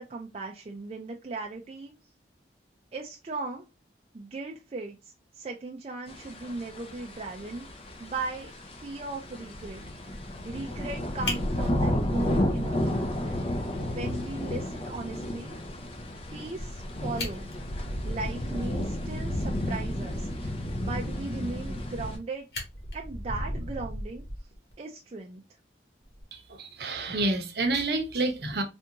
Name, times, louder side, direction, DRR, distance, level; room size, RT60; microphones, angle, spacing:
voice 1, 0.0-1.9 2.9-3.7 4.1-7.7 8.0-9.8 10.4-13.4 13.8-15.6 16.3-17.5 18.0-22.5 22.9-24.2 24.8-25.4, right 3 dB, 35° right, 0.4 m, -38 dB
sound 1, 6.1-22.2, left 1 dB, 30° left, 0.5 m, -32 dB
Fire, 11.2-13.2 13.5-13.6 14.0-14.1 14.4-14.5 16.7-16.8 17.1-18.8 21.6-22.2 22.5-24.7 26.0-26.2, left 1 dB, 70° left, 1.3 m, -36 dB
voice 2, 26.3-28.6, right 2 dB, 60° right, 0.7 m, -29 dB
3.4 x 2.6 x 2.7 m
head